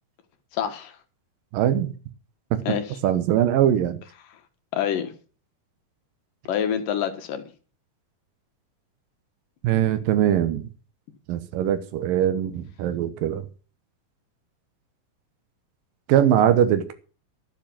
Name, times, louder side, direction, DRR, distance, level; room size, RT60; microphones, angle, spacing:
voice 1, 0.5-0.9 2.7-3.0 4.7-5.1 6.5-7.4, left 9 dB, 80° left, 3.0 m, -26 dB
voice 2, 1.5-1.9 2.5-2.8 3.0-4.0 9.6-10.6 11.3-13.5 16.1-16.9, right 10 dB, 85° right, 2.8 m, -21 dB
12.0 x 7.6 x 7.6 m
omnidirectional pair, 3.9 m